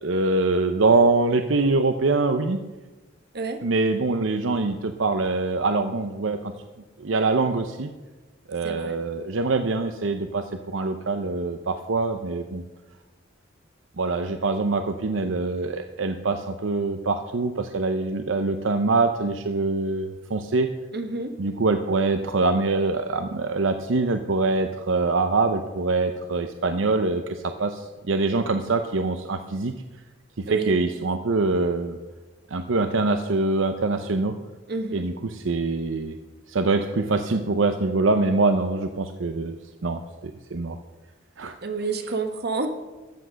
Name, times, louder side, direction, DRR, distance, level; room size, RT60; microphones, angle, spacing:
voice 1, 0.0-2.6 3.6-6.5 7.0-7.9 8.5-12.6 14.0-20.7 21.4-29.7 30.4-32.0 32.5-34.3 34.9-36.2 36.5-39.6 39.8-40.8 41.4-41.6, right 3 dB, 75° right, 8 dB, 0.7 m, -24 dB
voice 2, 8.6-9.0 20.9-21.3 30.5-30.7 34.7-35.1 41.6-42.7, right 4 dB, 55° right, 6 dB, 1.4 m, -29 dB
14.0 x 8.1 x 6.2 m, 1.2 s
head